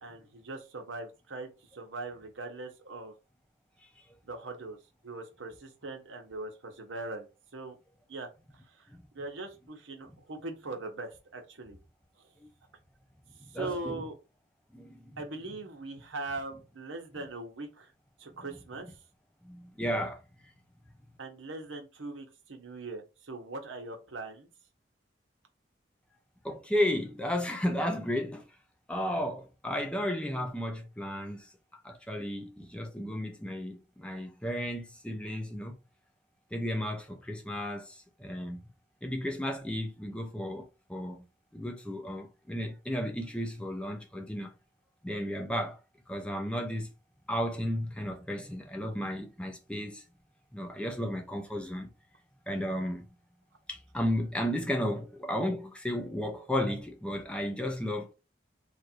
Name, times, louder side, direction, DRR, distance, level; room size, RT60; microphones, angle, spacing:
voice 1, 0.0-3.1 4.2-4.8 5.0-7.3 7.5-7.8 8.1-8.3 8.8-8.9 9.1-11.8 13.5-14.1 15.2-17.9 18.2-18.9 21.2-24.5, right 2 dB, 90° right, 1.0 m, -40 dB
voice 2, 13.5-14.0 14.7-15.2 19.4-20.2 26.4-28.5 28.9-35.8 36.5-38.6 39.0-41.2 41.5-44.5 45.0-45.8 46.1-46.9 47.3-50.0 50.5-51.9 52.5-53.1 53.7-58.1, equal, 5° left, 0.5 m, -33 dB
3.2 x 2.6 x 4.3 m
head